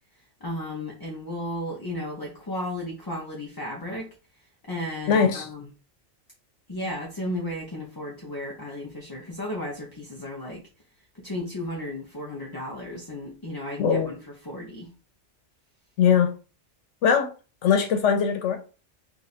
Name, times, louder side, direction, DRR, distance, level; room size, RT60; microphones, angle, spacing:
voice 1, 0.4-4.1 4.7-5.7 6.7-10.6 11.2-14.2 14.5-14.9, left 1 dB, 25° left, 0.6 m, -34 dB
voice 2, 5.1-5.5 13.8-14.1 16.0-16.3 17.0-17.3 17.6-18.6, left 7 dB, 80° left, 1.1 m, -21 dB
3.5 x 2.4 x 4.1 m
omnidirectional pair, 1.2 m